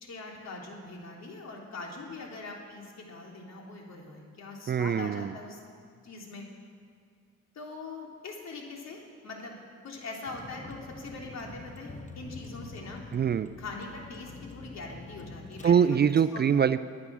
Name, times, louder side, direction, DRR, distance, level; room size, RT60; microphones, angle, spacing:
voice 1, 0.0-5.6 6.0-6.5 7.5-9.6 9.8-13.0 13.6-15.9 16.3-16.5, left 3 dB, 60° left, 0 dB, 3.1 m, -42 dB
voice 2, 4.7-5.3 13.1-13.5 15.6-16.8, right 8 dB, 35° right, 14 dB, 0.4 m, -23 dB
Vehicle, 10.3-15.7, left 3 dB, 25° left, 1.0 m, -46 dB
22.0 x 8.5 x 6.1 m, 2.1 s
cardioid pair, 90°, 30 cm